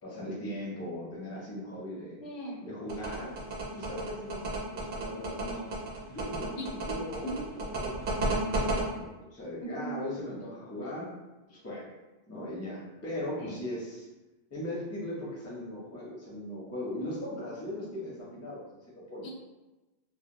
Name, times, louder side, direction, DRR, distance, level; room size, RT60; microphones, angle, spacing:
voice 1, 0.0-2.2 2.6-3.3 3.7-4.4 4.7-5.7 6.1-11.1 11.5-11.9 12.3-14.1 14.5-19.3, left 1 dB, 20° left, -6 dB, 0.5 m, -39 dB
voice 2, 2.2-2.7 6.6-6.7 7.3-7.5 9.8-10.1 13.4-13.6 19.2-19.3, right 1 dB, 80° left, -2 dB, 0.8 m, -39 dB
sound 1, 2.9-8.8, right 3 dB, 60° right, 0.7 m, -32 dB
2.2 x 2.0 x 2.7 m, 1.1 s
omnidirectional pair, 1.1 m